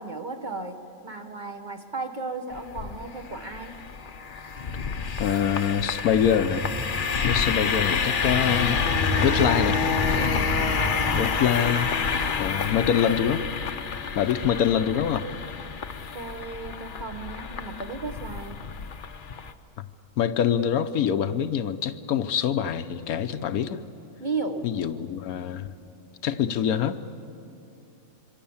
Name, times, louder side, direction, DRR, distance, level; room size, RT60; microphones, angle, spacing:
voice 1, 0.0-3.7 10.1-10.9 16.1-18.6 24.2-24.7, right 3 dB, 35° right, 5 dB, 1.2 m, -35 dB
sound 1, 2.5-19.5, left 5 dB, 45° left, 0.8 m, -28 dB
voice 2, 5.2-6.7 7.2-8.8 9.2-9.8 11.1-11.9 12.4-13.5 14.2-15.3 20.2-23.8 24.6-25.7 26.2-27.0, left 8 dB, 75° left, 10 dB, 1.2 m, -24 dB
sound 2, 6.1-11.3, right 1 dB, 15° right, 1.2 m, -34 dB
26.0 x 24.0 x 7.2 m, 2.7 s
omnidirectional pair, 1.6 m